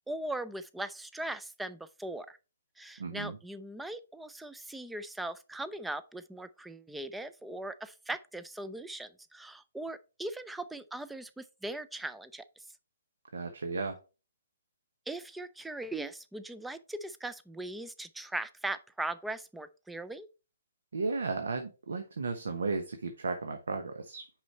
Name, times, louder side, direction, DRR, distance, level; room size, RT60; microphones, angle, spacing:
voice 1, 0.1-2.4 2.8-12.4 15.1-20.3, right 2 dB, 5° right, 0.4 m, -39 dB
voice 2, 3.0-3.4 13.3-14.0 20.9-24.3, right 4 dB, 70° right, 1.0 m, -34 dB
6.2 x 5.0 x 4.3 m
figure-of-eight pair, 135°, 0 cm